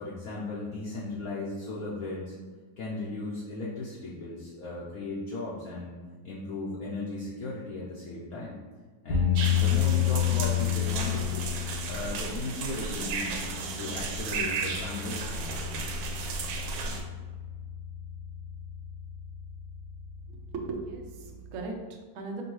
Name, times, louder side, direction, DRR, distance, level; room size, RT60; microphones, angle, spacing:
voice 1, 0.0-2.4 2.8-5.9 6.2-8.6 9.0-11.5 11.9-13.5 13.8-15.8, left 2 dB, 65° left, -6 dB, 1.0 m, -36 dB
sound 1, 9.1-21.6, left 11 dB, 80° left, 1.8 m, -32 dB
sound 2, 9.4-17.0, right 4 dB, 85° right, 1.3 m, -34 dB
voice 2, 20.3-22.4, right 3 dB, 70° right, 1 dB, 0.7 m, -38 dB
5.3 x 2.7 x 3.1 m, 1.5 s
omnidirectional pair, 1.9 m